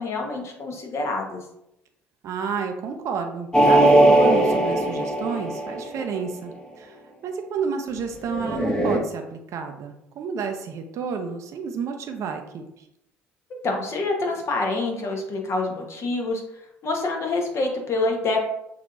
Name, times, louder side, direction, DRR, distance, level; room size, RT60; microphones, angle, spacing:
voice 1, 0.0-1.4 13.5-16.4 16.8-18.4, left 2 dB, 45° left, 2 dB, 1.2 m, -26 dB
voice 2, 2.2-12.6, right 6 dB, 50° right, 5 dB, 0.6 m, -31 dB
sound 1, 3.5-6.2 8.3-9.0, right 1 dB, 10° left, 0.9 m, -19 dB
6.1 x 2.9 x 2.6 m, 0.80 s
hypercardioid pair, 55°, 6 cm